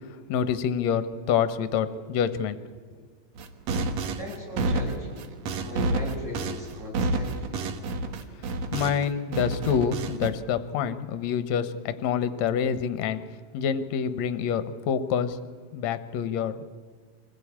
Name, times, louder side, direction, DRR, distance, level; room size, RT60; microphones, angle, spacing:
voice 1, 0.3-2.6 3.0-3.1 8.3-13.2 13.5-15.4 15.7-16.6, left 7 dB, 70° left, 12 dB, 1.9 m, -27 dB
sound 1, 3.4-9.1 9.3-10.3, right 2 dB, 60° right, 2.0 m, -29 dB
voice 2, 4.2-5.2 5.6-7.6, left 1 dB, 20° right, -2 dB, 7.3 m, -38 dB
24.0 x 16.5 x 8.6 m, 1.5 s
omnidirectional pair, 3.9 m